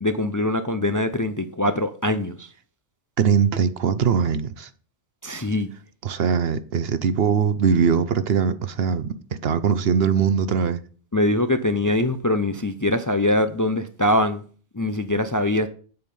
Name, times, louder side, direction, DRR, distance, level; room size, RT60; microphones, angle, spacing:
voice 1, 0.0-2.5 5.2-5.7 11.1-14.4 14.7-15.7, left 1 dB, 25° left, 0.5 m, -23 dB
voice 2, 3.2-4.7 6.0-10.8, right 6 dB, 65° right, 0.9 m, -21 dB
8.7 x 7.9 x 5.5 m
omnidirectional pair, 1.1 m